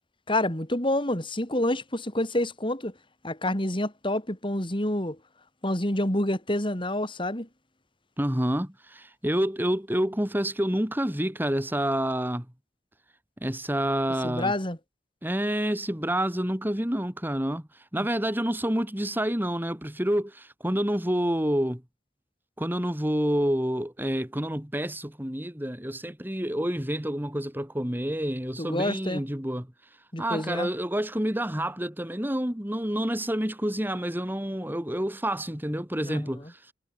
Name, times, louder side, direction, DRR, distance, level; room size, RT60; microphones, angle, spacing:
voice 1, 0.3-2.9 3.2-5.2 5.6-7.5 14.2-14.8 18.0-18.1 28.6-29.2 30.1-30.7 36.0-36.3, left 1 dB, 25° left, 4.4 m, -28 dB
voice 2, 8.2-12.5 13.4-14.5 15.2-21.8 22.6-29.7 30.2-36.5, equal, 10° right, 2.3 m, -28 dB
head